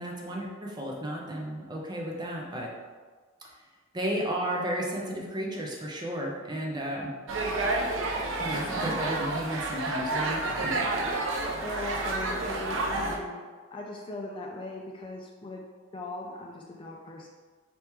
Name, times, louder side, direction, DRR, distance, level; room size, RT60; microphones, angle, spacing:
voice 1, 0.0-2.7 3.9-7.1 8.4-10.8, equal, 20° right, -2 dB, 0.6 m, -33 dB
sound 1, 7.3-13.2, right 2 dB, 75° right, 0.6 m, -30 dB
voice 2, 11.6-13.4 13.7-15.6 15.9-17.3, left 2 dB, 25° left, -1 dB, 0.3 m, -39 dB
3.5 x 2.9 x 4.4 m, 1.4 s
head